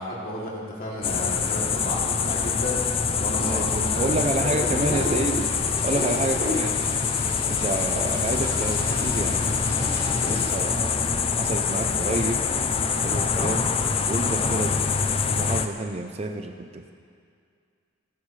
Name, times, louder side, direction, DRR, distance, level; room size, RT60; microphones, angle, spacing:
voice 1, 0.0-2.8 3.2-4.2 4.6-5.0 5.9-6.2 12.7-13.0, left 1 dB, 45° left, -5 dB, 2.9 m, -33 dB
sound 1, 1.0-15.7, left 5 dB, 30° left, 0.5 m, -25 dB
Wind instrument woodwind instrument, 2.5-11.5, left 1 dB, 10° right, 2.8 m, -44 dB
voice 2, 3.4-5.6 5.8-6.8 7.5-11.0 11.4-12.5 13.0-13.7 14.0-16.9, right 2 dB, 30° right, 6 dB, 0.6 m, -29 dB
Wind, 4.5-10.5, equal, 55° right, 2.2 m, -36 dB
27.0 x 9.4 x 3.3 m, 2.2 s
head